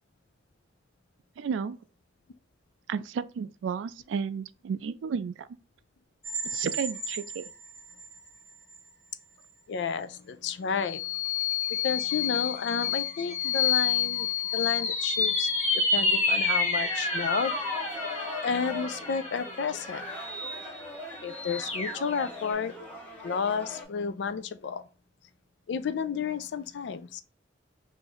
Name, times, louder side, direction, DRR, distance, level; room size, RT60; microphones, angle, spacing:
voice 1, 1.4-1.8 2.9-5.5 6.5-7.4, right 6 dB, 85° right, 0.3 m, -32 dB
sound 1, 6.2-8.2 8.7-8.8 10.8-22.5, left 4 dB, 35° left, 1.3 m, -29 dB
voice 2, 9.7-11.0 11.8-15.5 15.7-17.5 18.4-20.1 21.2-22.8 23.2-24.8 25.7-27.2, left 6 dB, 70° left, 0.4 m, -31 dB
sound 2, 16.7-23.8, left 2 dB, 10° left, 1.0 m, -42 dB
3.0 x 2.6 x 3.8 m
head